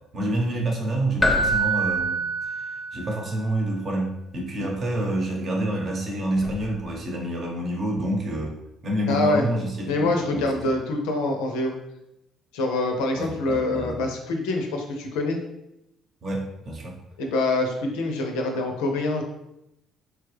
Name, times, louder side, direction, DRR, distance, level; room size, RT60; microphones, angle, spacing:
voice 1, 0.1-2.2 2.5-8.6 8.8-10.7 13.2-14.0 16.2-17.0, right 1 dB, 50° right, 0 dB, 0.9 m, -28 dB
Keyboard (musical), 1.2-3.2 6.4-6.6, right 2 dB, 10° left, 0.6 m, -24 dB
voice 2, 9.1-9.5 9.9-11.7 12.5-15.4 17.2-19.2, left 2 dB, 85° left, 3 dB, 0.5 m, -25 dB
3.0 x 2.2 x 3.2 m, 0.85 s
supercardioid pair, 65°, 0 cm